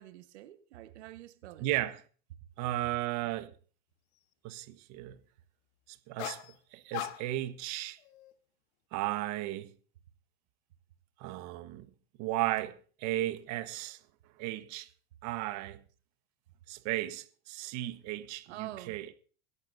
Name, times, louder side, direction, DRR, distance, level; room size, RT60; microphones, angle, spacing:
voice 1, 0.0-1.7 18.5-19.0, right 14 dB, 85° right, 1.4 m, -46 dB
voice 2, 1.6-2.0 2.6-3.5 4.4-5.2 5.9-6.4 6.7-8.0 8.9-9.7 11.2-11.9 12.2-14.0 14.4-14.9 15.2-15.8 16.7-19.1, right 15 dB, 55° right, 1.4 m, -35 dB
sound 1, 6.2-6.5 6.9-7.5 8.0-8.3, left 14 dB, 75° left, 1.4 m, -40 dB
23.5 x 11.5 x 2.7 m
supercardioid pair, 110°, 33 cm